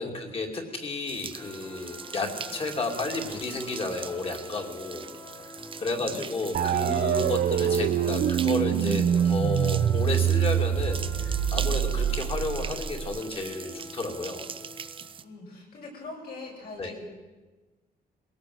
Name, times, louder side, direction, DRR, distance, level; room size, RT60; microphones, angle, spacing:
voice 1, 0.0-5.1 5.4-14.4 16.8-16.9, left 3 dB, 35° left, 3 dB, 2.8 m, -32 dB
sound 1, 1.1-15.2, right 6 dB, 30° right, 0.7 m, -41 dB
sound 2, 1.4-15.2, left 1 dB, 15° left, 1.7 m, -46 dB
voice 2, 5.8-6.2 15.2-17.0, left 3 dB, 65° left, -1 dB, 7.4 m, -43 dB
sound 3, 6.5-13.2, right 9 dB, 60° right, 0.9 m, -25 dB
22.0 x 17.5 x 7.9 m, 1.2 s
wide cardioid pair, 180°, 17 cm